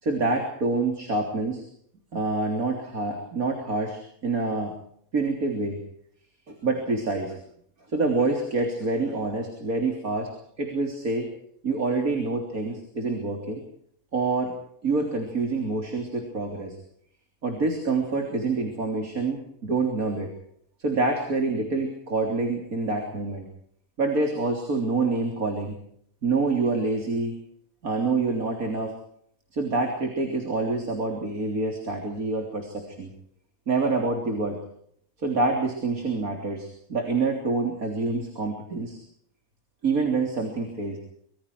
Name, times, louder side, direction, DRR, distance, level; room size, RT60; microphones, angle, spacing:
voice 1, 0.0-1.6 2.1-4.7 5.1-5.8 6.6-7.4 7.9-10.3 10.6-11.3 11.6-13.6 14.1-14.5 14.8-16.8 17.4-20.3 20.8-23.5 24.0-25.8 26.2-27.4 27.8-28.9 29.5-33.1 33.7-34.6 35.2-39.0 39.8-41.0, right 3 dB, 75° right, 3 dB, 3.9 m, -26 dB
26.0 x 24.0 x 4.6 m, 0.66 s
omnidirectional pair, 1.5 m